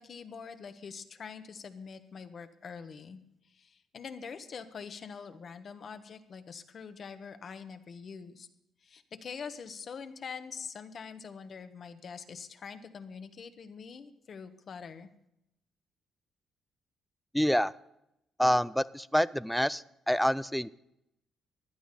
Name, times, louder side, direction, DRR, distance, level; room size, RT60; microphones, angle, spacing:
voice 1, 0.0-8.5 8.8-15.1, left 6 dB, 50° left, 8 dB, 1.2 m, -44 dB
voice 2, 17.3-17.7 18.4-20.7, equal, ahead, 18 dB, 0.4 m, -27 dB
15.0 x 11.0 x 4.2 m, 0.82 s
cardioid pair, 90°, 0 cm